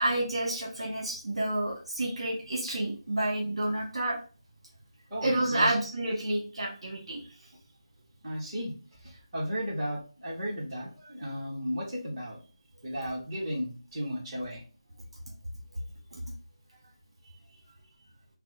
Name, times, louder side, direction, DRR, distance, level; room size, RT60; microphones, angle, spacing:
voice 1, 0.0-4.2 5.2-7.2 16.1-16.2, right 1 dB, 55° right, -1 dB, 1.1 m, -29 dB
voice 2, 5.1-5.7 8.2-8.7 9.0-12.4 12.8-14.6, equal, 20° right, -6 dB, 1.1 m, -34 dB
3.4 x 2.1 x 3.1 m, 0.36 s
figure-of-eight pair, 175°, 3 cm